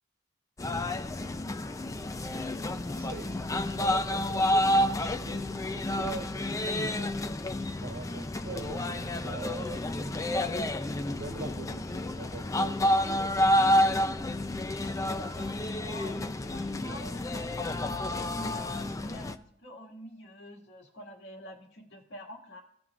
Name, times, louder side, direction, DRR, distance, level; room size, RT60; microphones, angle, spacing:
sound 1, 0.6-19.3, left 1 dB, 15° left, 0.4 m, -29 dB
voice 1, 2.9-3.3 3.7-7.2 7.8-10.8 11.1-12.8, right 4 dB, 50° right, 0.5 m, -43 dB
voice 2, 14.4-22.6, equal, 60° left, 2.0 m, -47 dB
16.5 x 6.0 x 2.4 m
head